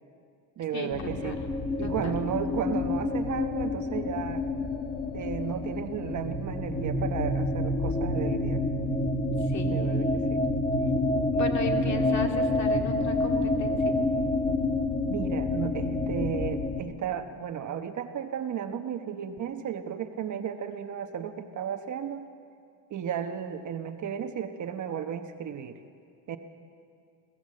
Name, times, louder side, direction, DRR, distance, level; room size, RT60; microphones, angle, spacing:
voice 1, 0.6-1.4 1.8-4.4 5.1-8.6 9.7-10.4 15.1-22.3 22.9-25.8 26.3-26.4, right 8 dB, 40° right, 7 dB, 1.1 m, -34 dB
sound 1, 0.9-16.8, left 2 dB, 20° left, 1.6 m, -28 dB
voice 2, 1.8-2.1 9.4-9.8 11.3-13.8, left 3 dB, 40° left, 3 dB, 2.5 m, -35 dB
22.0 x 16.5 x 7.7 m, 2.3 s
cardioid pair, 130°, 43 cm